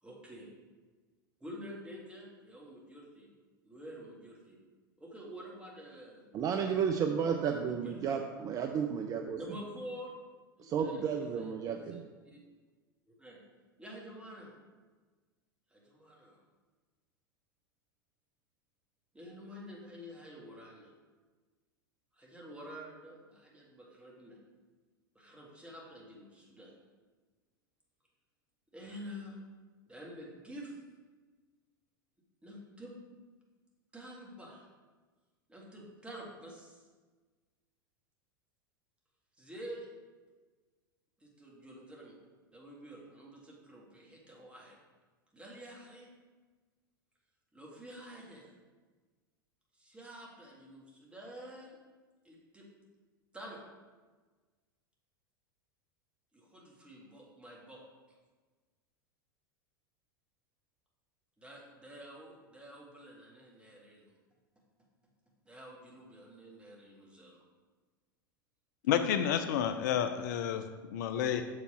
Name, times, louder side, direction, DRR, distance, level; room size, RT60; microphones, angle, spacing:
voice 1, 0.0-0.5 1.4-3.3 3.6-4.6 5.0-6.3 6.6-6.7 7.2-8.2 9.3-10.2 10.6-12.0 12.3-12.4 13.1-13.4 13.8-14.5 15.7-16.4 19.1-20.9 22.2-24.4 25.2-26.7 28.7-29.4 29.9-30.7 32.4-32.9 33.9-34.7 35.5-36.8 39.4-39.9 41.2-42.2 42.5-44.8 45.3-46.1 47.5-48.5 49.7-51.8 52.2-52.7 53.3-53.6 56.3-57.8 61.4-64.2 65.5-67.4, equal, 10° right, -3 dB, 1.9 m, -49 dB
voice 2, 6.3-9.4 10.6-12.0, right 7 dB, 30° right, 4 dB, 0.4 m, -32 dB
voice 3, 68.8-71.4, left 9 dB, 55° left, 9 dB, 0.4 m, -30 dB
6.6 x 4.9 x 4.3 m, 1.4 s
figure-of-eight pair, 85°, 12 cm